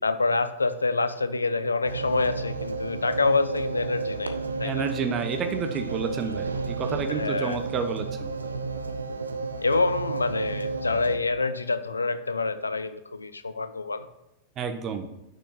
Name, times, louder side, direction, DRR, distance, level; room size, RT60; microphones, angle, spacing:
voice 1, 0.0-4.9 7.1-7.6 9.6-14.1, left 3 dB, 80° left, 12 dB, 0.5 m, -27 dB
sound 1, 1.8-11.2, right 4 dB, 75° right, 0.5 m, -32 dB
voice 2, 4.6-8.3 14.6-15.1, right 6 dB, 30° right, 7 dB, 0.9 m, -30 dB
6.4 x 6.0 x 6.1 m, 0.90 s
figure-of-eight pair, 90°, 0 cm